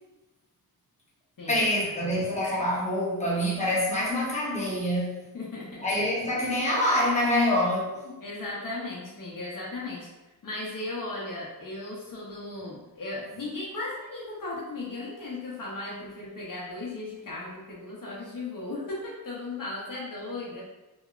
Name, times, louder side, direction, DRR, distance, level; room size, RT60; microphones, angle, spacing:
voice 1, 1.5-5.2 5.8-7.9, left 1 dB, 20° left, -6 dB, 0.8 m, -26 dB
voice 2, 5.3-5.9 8.0-10.1 10.4-20.6, left 2 dB, 60° left, -6 dB, 0.6 m, -36 dB
2.8 x 2.0 x 2.3 m, 1.1 s
wide cardioid pair, 70°, 38 cm